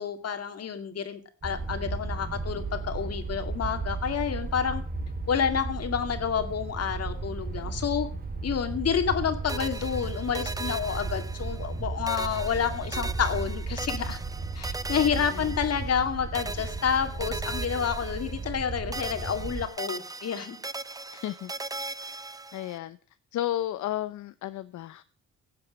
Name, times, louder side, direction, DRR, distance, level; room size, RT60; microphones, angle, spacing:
voice 1, 0.0-4.8 5.3-8.1 8.4-14.2 14.5-20.6, left 7 dB, 55° left, 8 dB, 2.3 m, -29 dB
sound 1, 1.4-19.7, right 3 dB, 30° right, 2.5 m, -34 dB
sound 2, 9.5-11.8 12.1-16.1 16.3-18.7 18.9-22.8, right 3 dB, 10° right, 0.6 m, -39 dB
voice 2, 15.2-15.5 21.1-21.9 22.5-23.0 23.3-25.0, left 13 dB, 75° left, 13 dB, 0.7 m, -33 dB
16.5 x 7.7 x 6.2 m, 0.40 s
cardioid pair, 90°, 30 cm